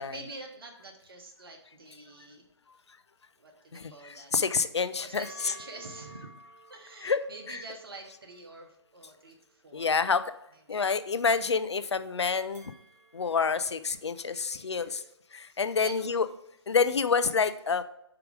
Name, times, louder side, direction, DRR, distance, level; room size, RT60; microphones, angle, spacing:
voice 1, 0.0-2.5 3.4-4.3 5.0-6.3 6.7-10.0 10.5-10.9 14.3-15.0 15.5-16.3 16.8-17.0, right 2 dB, 55° right, 2 dB, 1.3 m, -47 dB
voice 2, 3.7-5.5 7.0-7.2 9.7-10.2 10.7-12.7 13.1-15.0 15.3-16.3 16.7-17.8, left 5 dB, 70° left, 12 dB, 0.5 m, -28 dB
sound 1, 5.1-9.6 12.5-15.1, right 2 dB, 15° right, 0.9 m, -54 dB
4.9 x 4.5 x 5.0 m, 0.79 s
figure-of-eight pair, 140°, 15 cm